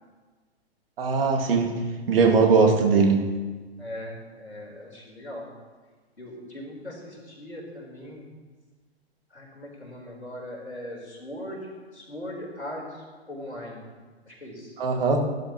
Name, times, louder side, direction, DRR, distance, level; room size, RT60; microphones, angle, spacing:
voice 1, 1.0-1.7 2.1-3.3 14.8-15.2, right 4 dB, 60° right, 2 dB, 2.2 m, -20 dB
voice 2, 3.8-5.5 6.2-8.3 9.3-13.9 14.3-14.7, left 1 dB, 90° left, -1 dB, 4.0 m, -39 dB
17.5 x 11.5 x 3.1 m, 1.4 s
figure-of-eight pair, 110°, 32 cm